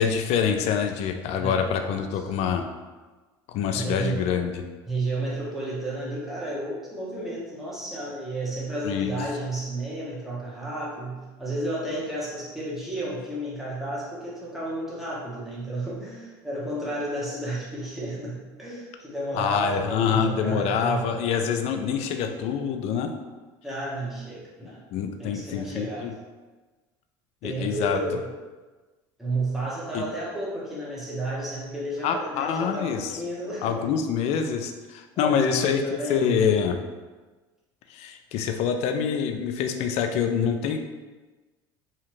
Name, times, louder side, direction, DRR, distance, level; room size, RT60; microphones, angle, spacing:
voice 1, 0.0-2.6 3.5-4.5 8.8-9.2 19.3-23.1 24.9-26.1 27.4-28.0 29.9-30.0 32.0-33.2 33.6-35.8 36.1-36.8 37.9-40.8, left 7 dB, 60° left, 6 dB, 0.4 m, -25 dB
voice 2, 1.4-2.1 3.7-4.2 4.9-21.1 23.6-24.8 25.2-26.1 27.4-28.2 29.2-33.8 34.3-34.4 35.1-36.4, right 1 dB, ahead, -6 dB, 1.0 m, -32 dB
2.8 x 2.4 x 3.0 m, 1.3 s
supercardioid pair, 90°, 12 cm